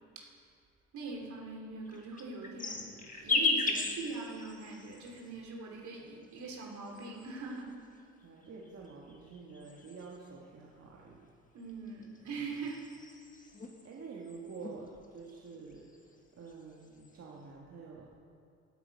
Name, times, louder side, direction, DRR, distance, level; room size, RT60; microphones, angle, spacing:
voice 1, 0.9-7.7 11.5-13.1, right 3 dB, 70° right, -1 dB, 3.0 m, -42 dB
sound 1, 1.9-5.3 6.2-7.6 8.4-10.3 11.7-13.9 14.3-14.8 15.0-16.1 16.5-17.1, left 3 dB, 25° left, 1.6 m, -36 dB
voice 2, 8.2-11.3 13.8-16.0 16.4-18.1, right 4 dB, 55° right, -3 dB, 1.7 m, -48 dB
16.0 x 8.8 x 5.3 m, 2.3 s
cardioid pair, 90°, 30 cm